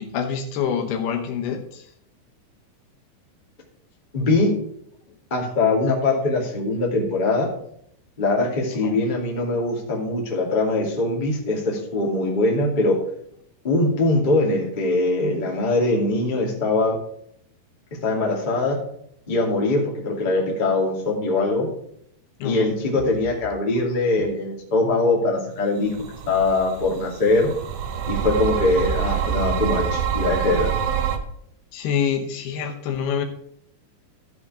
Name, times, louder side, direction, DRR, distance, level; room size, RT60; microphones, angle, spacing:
voice 1, 0.0-1.9 8.8-9.0 22.4-22.8 29.3-29.4 31.7-33.2, left 7 dB, 75° left, 4 dB, 2.8 m, -26 dB
voice 2, 4.1-4.5 5.3-7.5 8.2-13.0 13.6-17.0 18.0-18.8 19.3-21.7 22.4-25.9 26.3-27.5 28.1-30.7, left 2 dB, 20° left, -2 dB, 1.4 m, -22 dB
sound 1, 25.9-31.2, right 8 dB, 80° right, 1.8 m, -26 dB
14.5 x 5.1 x 4.8 m, 0.69 s
omnidirectional pair, 4.8 m